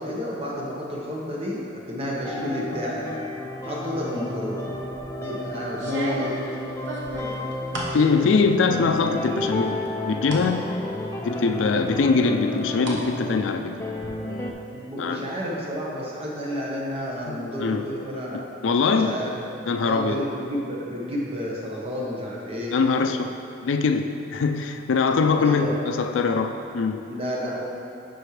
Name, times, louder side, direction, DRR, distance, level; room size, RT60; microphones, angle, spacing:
voice 1, 0.0-1.6 1.9-3.2 3.6-4.7 5.1-6.3 14.7-18.4 18.9-19.3 19.8-22.7 25.3-25.8 27.1-27.6, equal, 30° right, -4 dB, 1.1 m, -30 dB
sound 1, 2.2-14.5, left 1 dB, 15° left, 0.4 m, -32 dB
sound 2, 4.7-5.1 5.7-8.0 8.4-9.0 9.4-10.5 10.9-11.0 11.9-13.0 13.3-14.1, right 1 dB, 75° right, 1.1 m, -36 dB
voice 2, 7.9-10.7 11.2-13.8 15.0-15.3 17.2-17.9 18.3-19.2 19.7-20.3 22.7-23.3 23.6-27.1, left 4 dB, 80° left, 7 dB, 0.4 m, -23 dB
11.5 x 4.3 x 3.3 m, 2.8 s
head